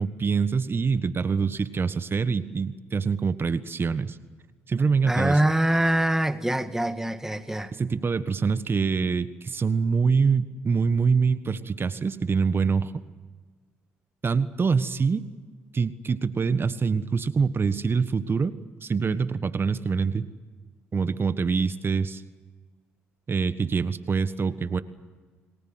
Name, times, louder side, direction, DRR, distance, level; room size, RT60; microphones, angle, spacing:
voice 1, 0.0-4.2 4.7-5.4 7.7-12.9 14.2-15.2 15.7-18.5 18.8-20.3 20.9-22.2 23.3-24.8, right 5 dB, 35° right, 1.4 m, -25 dB
voice 2, 5.1-7.7, right 1 dB, 5° right, 1.7 m, -24 dB
29.5 x 19.5 x 7.9 m
supercardioid pair, 60°, 6 cm